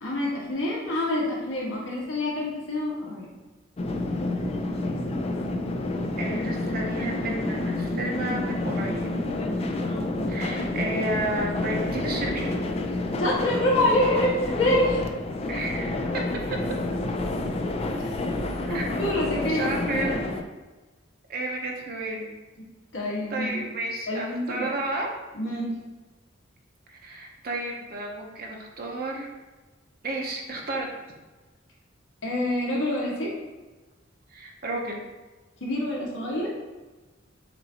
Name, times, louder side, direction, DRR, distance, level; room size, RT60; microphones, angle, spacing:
voice 1, 0.0-3.3 13.2-15.0 18.7-20.1 22.9-23.6 24.1-24.7 25.3-25.8 32.2-33.3 35.6-36.5, left 1 dB, 80° left, -5 dB, 1.4 m, -26 dB
sound 1, 3.8-20.4, left 2 dB, 30° left, 0.4 m, -29 dB
voice 2, 6.2-9.1 10.3-12.5 15.5-16.0 18.7-18.9 19.4-20.2 21.3-22.3 23.3-25.1 26.9-29.3 30.0-30.9 34.3-35.0, right 2 dB, 50° right, 0 dB, 0.7 m, -32 dB
6.8 x 2.6 x 2.8 m, 1.2 s
head